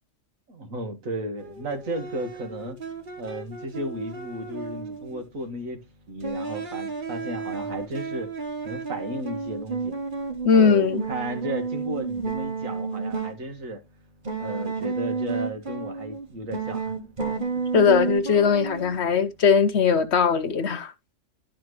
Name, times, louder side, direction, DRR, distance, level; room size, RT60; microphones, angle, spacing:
voice 1, 0.5-2.8 3.2-8.3 8.6-10.0 10.5-13.8 14.4-16.9 17.2-17.6, right 1 dB, 80° right, 1.9 m, -34 dB
sound 1, 1.4-5.2 6.2-13.4 14.2-16.3 16.5-19.0, right 4 dB, 40° right, 1.3 m, -32 dB
voice 2, 10.4-11.0 17.7-20.9, left 6 dB, 60° left, 1.1 m, -20 dB
11.5 x 4.3 x 3.1 m
omnidirectional pair, 1.4 m